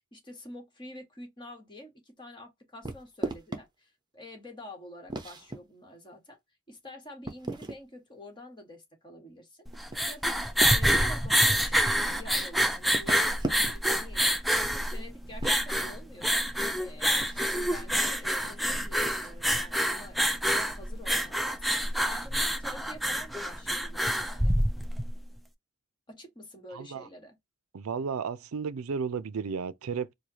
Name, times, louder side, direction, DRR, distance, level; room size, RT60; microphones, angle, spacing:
voice 1, 0.1-6.4 6.7-9.7 10.1-10.4 10.7-16.4 16.7-21.7 22.0-24.5 26.1-27.3, left 1 dB, 20° left, 1.5 m, -47 dB
sound 1, 2.8-3.6 5.1-5.6 7.3-7.8 9.7-11.1 12.8-13.9 15.2-15.6 17.2-17.5 19.0-19.3, right 1 dB, 20° right, 0.9 m, -36 dB
sound 2, 9.7-25.1, equal, ahead, 0.4 m, -27 dB
voice 2, 26.7-27.1 27.7-30.1, right 6 dB, 85° right, 0.5 m, -33 dB
4.8 x 2.2 x 2.8 m
head